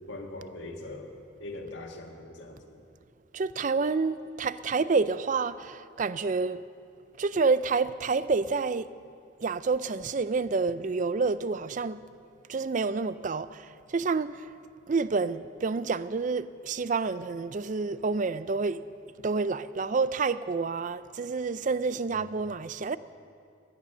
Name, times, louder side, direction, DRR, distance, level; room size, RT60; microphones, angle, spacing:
voice 1, 0.1-1.1 1.4-2.8 22.1-22.3, left 2 dB, 65° left, 1.9 m, -41 dB
voice 2, 3.3-6.6 7.2-8.9 9.4-12.0 12.5-14.3 14.9-18.8 19.2-23.0, right 4 dB, 40° right, 0.4 m, -28 dB
18.0 x 11.5 x 6.7 m
head